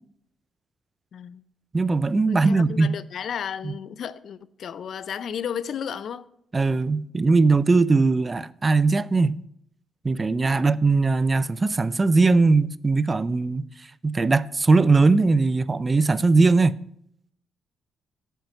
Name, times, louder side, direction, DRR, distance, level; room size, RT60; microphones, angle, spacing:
voice 1, 1.1-1.4 2.3-6.3 10.6-10.8, left 8 dB, 60° left, 0.5 m, -33 dB
voice 2, 1.7-3.0 3.6-3.7 6.5-9.4 10.0-13.7 14.0-16.8, right 3 dB, 25° right, 0.4 m, -20 dB
9.0 x 7.8 x 5.4 m
cardioid pair, 90°, 0 cm